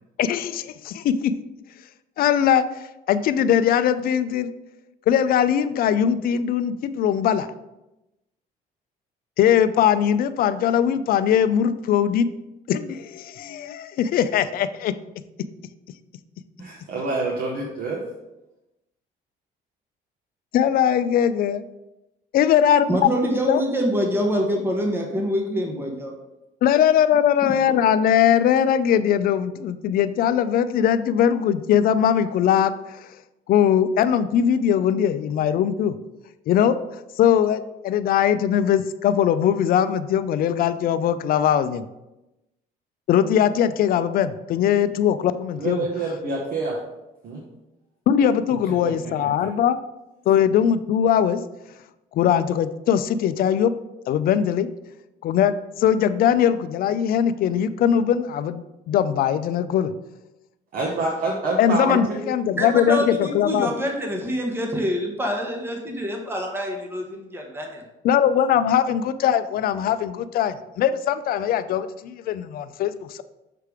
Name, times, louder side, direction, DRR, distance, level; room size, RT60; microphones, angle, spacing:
voice 1, 0.2-1.3 2.2-4.5 5.1-7.5 9.4-12.3 12.7-14.9 20.5-21.6 22.3-22.9 23.5-23.6 26.6-33.1 33.5-36.0 36.5-36.8 37.2-41.8 43.1-45.9 48.1-49.8 50.3-51.4 52.1-53.7 54.1-54.7 55.2-55.5 55.8-59.9 61.6-63.7 68.0-73.2, left 9 dB, 60° left, 12 dB, 0.4 m, -20 dB
voice 2, 16.6-18.0 45.5-46.8 47.2-47.4 60.7-62.2, right 3 dB, 60° right, -2 dB, 1.1 m, -27 dB
voice 3, 22.9-26.1 27.4-27.5 62.6-67.8, equal, 15° right, 1 dB, 1.1 m, -25 dB
6.7 x 3.3 x 4.8 m, 0.95 s
cardioid pair, 110°, 17 cm